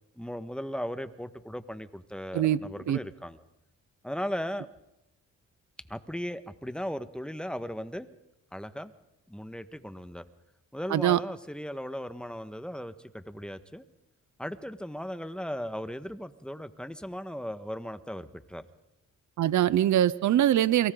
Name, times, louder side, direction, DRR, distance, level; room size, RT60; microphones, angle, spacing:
voice 1, 0.1-3.4 4.0-4.7 5.9-8.1 8.5-8.9 9.3-10.2 10.7-13.8 14.4-18.6, equal, 5° left, 10 dB, 1.6 m, -37 dB
voice 2, 10.9-11.2 19.4-20.9, right 12 dB, 70° right, 18 dB, 0.8 m, -23 dB
29.5 x 23.5 x 4.0 m, 0.86 s
cardioid pair, 70°, 30 cm